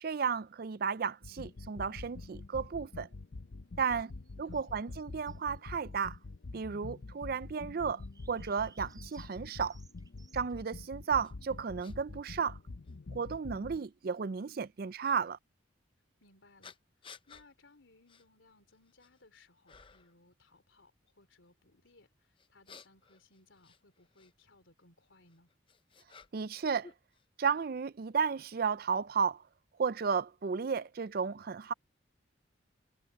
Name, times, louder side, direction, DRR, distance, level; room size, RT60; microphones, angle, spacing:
voice 1, 0.0-3.1 3.8-4.1 4.4-6.2 6.5-8.0 8.3-9.8 10.3-12.6 13.1-15.4 26.3-26.9 27.4-29.4 29.8-31.7, right 6 dB, 50° right, 0.4 m, -33 dB
sound 1, 1.2-13.8, left 3 dB, 70° left, 0.7 m, -46 dB
voice 2, 3.8-4.8 16.2-25.5, left 2 dB, 85° left, 3.5 m, -64 dB
sound 2, 4.1-6.1 8.0-10.7, right 5 dB, 20° right, 5.3 m, -64 dB
sound 3, 11.2-11.3 11.8-12.0 12.8-12.9 15.0-15.2 16.6-17.5 18.1-18.3 18.7-19.2 19.7-20.2 22.4-24.3 25.3-26.6 26.8-27.7, left 5 dB, 25° left, 0.7 m, -56 dB
head